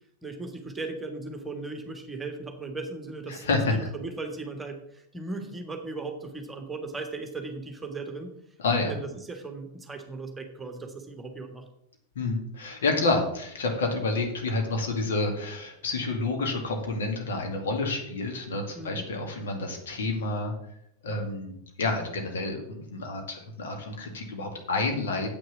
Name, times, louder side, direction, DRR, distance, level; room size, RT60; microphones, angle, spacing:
voice 1, 0.2-8.4 8.9-11.6 18.7-19.1, right 3 dB, 10° right, 4 dB, 1.6 m, -37 dB
voice 2, 3.3-3.9 8.6-8.9 12.2-20.5 21.0-21.5 21.8-25.3, left 3 dB, 60° left, 3 dB, 2.2 m, -29 dB
8.3 x 6.4 x 7.1 m, 0.74 s
figure-of-eight pair, 90°, 0 cm